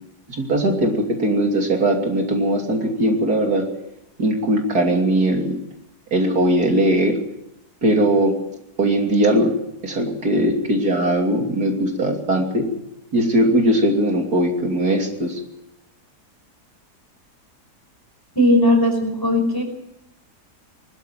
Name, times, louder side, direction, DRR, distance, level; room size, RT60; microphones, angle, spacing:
voice 1, 0.3-3.7 4.2-5.6 6.1-7.2 7.8-8.3 8.8-9.5 9.8-12.7 13.1-15.4, right 1 dB, 70° right, 2 dB, 3.5 m, -19 dB
voice 2, 18.3-19.6, left 1 dB, 15° left, 4 dB, 5.1 m, -17 dB
23.0 x 13.0 x 9.2 m, 0.84 s
omnidirectional pair, 1.7 m